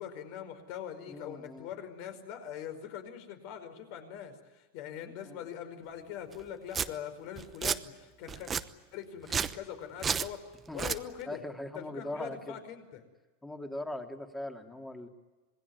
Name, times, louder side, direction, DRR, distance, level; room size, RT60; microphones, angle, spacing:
voice 1, 0.0-8.5 8.9-10.4 10.7-11.4 11.7-13.0, left 9 dB, 55° left, 8 dB, 5.1 m, -42 dB
voice 2, 1.1-1.7 5.0-5.5 10.7-10.8 11.3-12.6 13.4-15.1, left 1 dB, 5° left, 4 dB, 2.7 m, -40 dB
Domestic sounds home sounds, 6.3-6.4 6.7-6.9 7.4-7.8 8.3-8.6 9.2-9.6 10.0-10.3 10.7-11.0, right 7 dB, 20° right, 0.9 m, -31 dB
26.5 x 21.0 x 9.7 m, 1.2 s
supercardioid pair, 145°, 0 cm